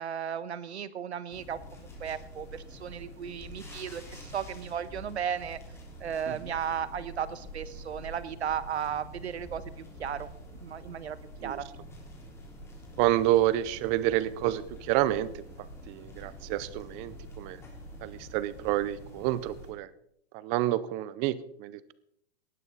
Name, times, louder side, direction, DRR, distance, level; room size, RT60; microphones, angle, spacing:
voice 1, 0.0-5.6 6.0-9.6 10.0-10.3 10.6-11.2 11.4-11.6, right 8 dB, 85° right, 15 dB, 1.3 m, -35 dB
sound 1, 1.3-19.7, equal, 10° left, 3.5 m, -46 dB
voice 2, 13.0-15.4 15.9-17.6 18.0-19.9 20.3-21.9, right 14 dB, 20° right, 17 dB, 0.6 m, -29 dB
18.5 x 12.0 x 4.1 m, 0.73 s
hypercardioid pair, 145°, 32 cm